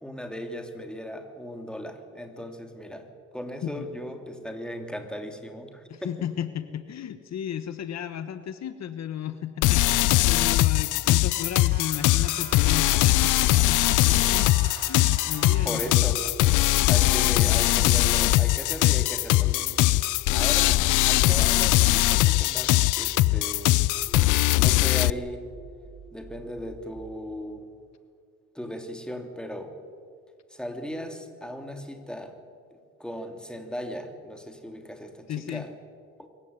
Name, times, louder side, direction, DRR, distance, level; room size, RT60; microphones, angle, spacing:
voice 1, 0.0-3.1 3.3-5.8 15.6-16.3 16.9-19.7 20.3-23.7 24.5-25.4 26.1-27.6 28.5-29.7 30.5-32.3 33.0-35.7 36.2-36.3, equal, 5° left, 5 dB, 3.1 m, -37 dB
voice 2, 5.9-16.0 20.2-20.6 35.3-35.7, left 9 dB, 60° left, 11 dB, 1.2 m, -34 dB
sound 1, 9.6-25.1, left 17 dB, 85° left, 0.5 m, -21 dB
sound 2, 11.3-15.9 16.9-17.7, right 6 dB, 85° right, 2.8 m, -44 dB
sound 3, 12.3-27.4, right 3 dB, 50° right, 3.8 m, -48 dB
24.0 x 15.0 x 9.7 m, 2.1 s
cardioid pair, 90°, 30 cm